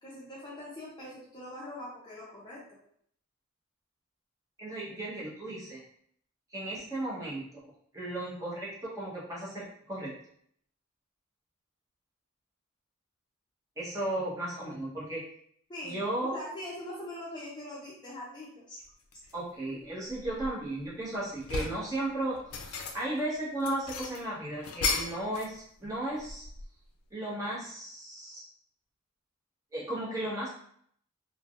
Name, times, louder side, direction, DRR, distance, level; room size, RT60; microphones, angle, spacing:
voice 1, 0.0-2.6 15.7-18.8 19.2-19.3, left 1 dB, 20° left, -7 dB, 0.5 m, -42 dB
voice 2, 4.6-5.8 6.5-7.6 7.9-10.1 13.8-15.3 15.8-16.4 19.3-26.5 27.1-28.4 29.7-30.5, right 1 dB, 15° right, -7 dB, 0.8 m, -35 dB
sound 1, 19.1-19.4 19.9-20.9 21.2-21.9 22.3-23.2 23.6-25.6 25.8-26.8, left 4 dB, 85° left, 0.4 m, -35 dB
3.2 x 2.1 x 2.4 m, 0.66 s
head